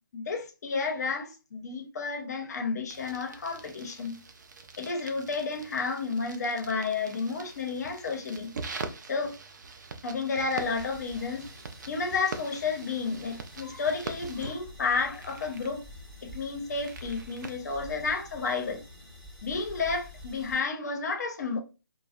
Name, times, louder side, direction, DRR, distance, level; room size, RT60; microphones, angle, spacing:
voice 1, 0.1-4.2 4.8-8.5 9.1-9.4 10.0-11.5 11.9-15.8 16.2-18.8 19.4-21.6, left 4 dB, 45° left, 0.6 m, -31 dB
sound 1, 2.9-17.6, right 4 dB, 55° right, 0.4 m, -44 dB
sound 2, 10.6-20.6, left 1 dB, 5° left, 0.7 m, -48 dB
2.6 x 2.1 x 2.3 m
figure-of-eight pair, 150°, 12 cm